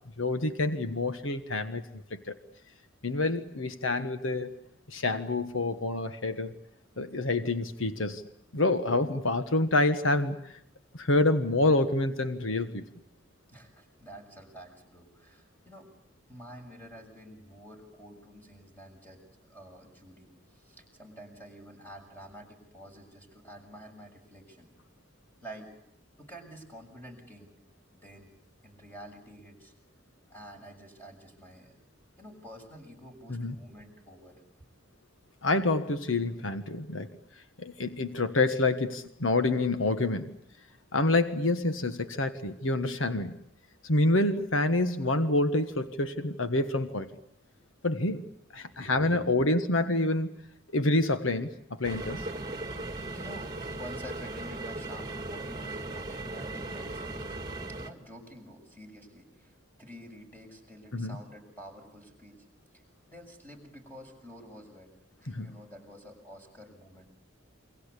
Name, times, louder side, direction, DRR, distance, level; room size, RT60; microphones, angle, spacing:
voice 1, 0.2-1.8 2.1-2.3 3.0-4.5 4.9-6.5 7.0-8.2 8.5-10.5 10.9-12.9 33.3-33.5 35.4-37.1 37.6-40.4 40.9-43.4 43.8-47.1 47.8-48.3 48.5-50.3 50.7-52.2 60.9-61.2 65.3-65.5, left 2 dB, 85° left, 10 dB, 1.5 m, -27 dB
voice 2, 13.5-15.9 16.3-19.2 19.5-24.7 25.4-25.7 26.2-27.5 27.9-28.3 28.6-29.7 30.3-31.8 32.2-34.4 48.5-49.5 53.1-57.2 57.8-62.4 63.1-64.9 65.2-67.1, equal, 10° left, 3 dB, 6.7 m, -49 dB
sound 1, 51.8-57.9, right 2 dB, 20° right, 2.3 m, -37 dB
29.0 x 24.0 x 8.4 m, 0.76 s
head